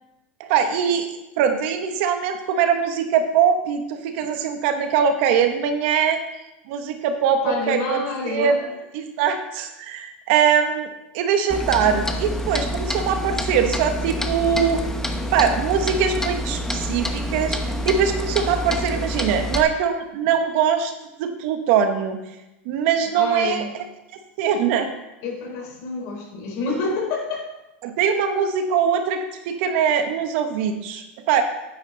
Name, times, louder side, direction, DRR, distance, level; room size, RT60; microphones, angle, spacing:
voice 1, 0.4-1.1 1.4-6.2 6.7-8.7 8.9-10.9 11.1-14.8 15.3-17.6 17.8-20.9 21.2-22.2 22.6-23.7 24.4-24.9 27.8-31.4, right 7 dB, 65° right, 6 dB, 1.4 m, -22 dB
voice 2, 7.4-8.6 23.1-23.7 25.2-27.5, left 4 dB, 55° left, 0 dB, 4.4 m, -28 dB
Clock, 11.5-19.6, equal, 5° left, 1.0 m, -27 dB
9.6 x 9.5 x 4.1 m, 0.96 s
supercardioid pair, 120°, 7 cm